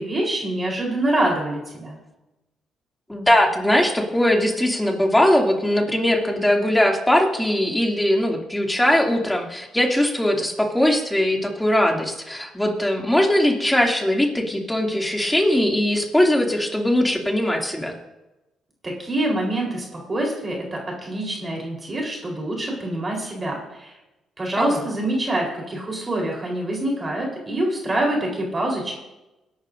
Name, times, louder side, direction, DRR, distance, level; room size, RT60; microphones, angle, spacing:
voice 1, 0.0-2.0 18.8-23.9 24.4-28.9, right 1 dB, 30° right, -1 dB, 4.1 m, -25 dB
voice 2, 3.1-17.9 24.6-24.8, left 1 dB, 5° left, 0 dB, 2.7 m, -20 dB
22.5 x 11.5 x 2.7 m, 0.99 s
cardioid pair, 90°, 0 cm